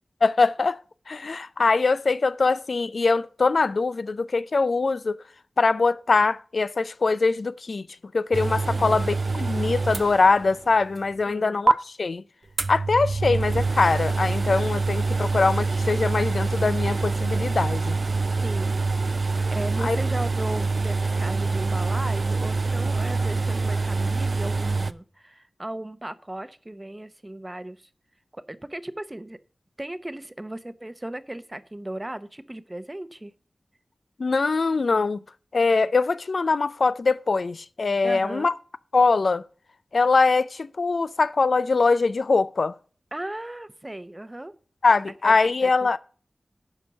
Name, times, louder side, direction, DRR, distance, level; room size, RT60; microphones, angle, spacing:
voice 1, 0.2-0.8 1.1-5.2 5.6-7.8 8.1-12.2 12.7-18.0 19.8-20.0 34.2-35.2 35.5-38.5 38.9-39.4 39.9-42.7 44.8-46.0, left 4 dB, 70° left, 0.4 m, -22 dB
sound 1, 8.3-10.6 11.0-11.1 11.7-11.8 12.6-24.9, right 3 dB, 60° right, 0.4 m, -25 dB
voice 2, 8.7-9.1 11.3-11.6 18.4-18.7 19.5-27.9 28.3-29.4 29.8-33.3 38.0-38.5 43.1-44.5 45.2-45.4 45.6-46.0, right 1 dB, 20° right, 0.8 m, -36 dB
11.5 x 4.5 x 6.9 m
wide cardioid pair, 65°, 0 cm